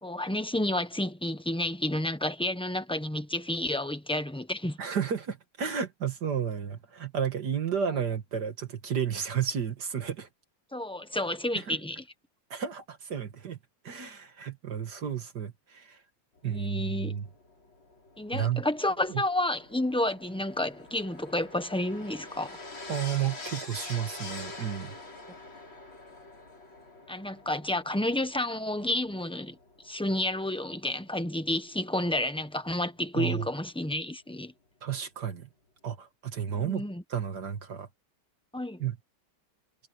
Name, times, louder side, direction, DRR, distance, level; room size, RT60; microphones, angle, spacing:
voice 1, 0.0-4.8 10.7-12.0 16.4-17.1 18.2-22.6 27.1-29.6 29.8-34.5 36.5-37.0 38.5-38.8, left 1 dB, 5° left, 0.9 m, -30 dB
voice 2, 4.8-10.3 11.5-11.8 12.5-13.6 13.8-16.0 16.4-17.3 18.3-18.7 19.1-19.2 22.9-25.0 33.1-33.5 34.8-35.5 35.8-36.8 37.1-37.9 38.8-39.0, right 8 dB, 55° right, 2.3 m, -32 dB
sound 1, 16.4-32.8 33.8-33.9, left 3 dB, 75° left, 6.5 m, -46 dB
omnidirectional pair, 2.2 m